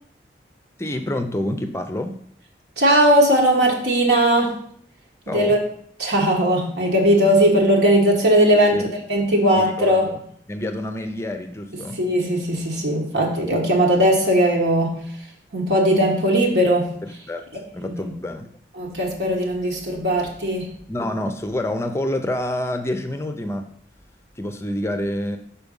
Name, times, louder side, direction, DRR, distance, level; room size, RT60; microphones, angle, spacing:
voice 1, 0.8-2.1 5.3-5.6 8.7-8.8 9.5-10.2 10.5-12.0 17.3-17.4 17.7-18.5 20.9-23.7 24.4-25.4, left 1 dB, 15° left, 7 dB, 0.5 m, -27 dB
voice 2, 2.8-4.6 5.3-5.6 6.0-10.1 11.9-15.0 15.5-16.9 17.8-18.1 18.8-20.7, right 1 dB, 75° right, -1 dB, 1.3 m, -18 dB
6.0 x 4.4 x 5.3 m, 0.63 s
head